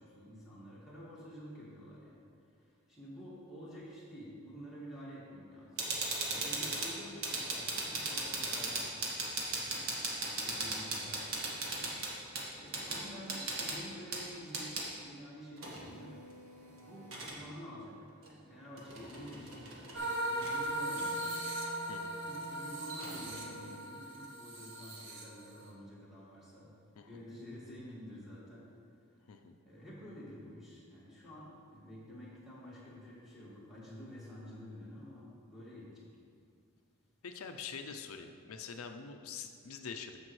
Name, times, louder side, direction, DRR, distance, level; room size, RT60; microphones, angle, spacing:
voice 1, 0.0-2.2 3.0-5.9 6.3-8.9 9.4-9.9 10.2-11.9 12.5-16.1 16.6-17.9 18.3-21.2 22.3-26.7 27.1-28.7 29.7-36.1, equal, ahead, -8 dB, 1.9 m, -49 dB
sound 1, 5.8-14.9 15.6-17.4 18.2-18.3 18.8-20.1 20.4-20.6 21.0-23.8, right 2 dB, 75° right, 1.4 m, -39 dB
sound 2, 19.9-25.7, right 1 dB, 60° right, 1.1 m, -38 dB
voice 2, 37.2-40.2, left 6 dB, 80° left, 6 dB, 0.5 m, -45 dB
13.5 x 5.2 x 3.1 m, 2.3 s
head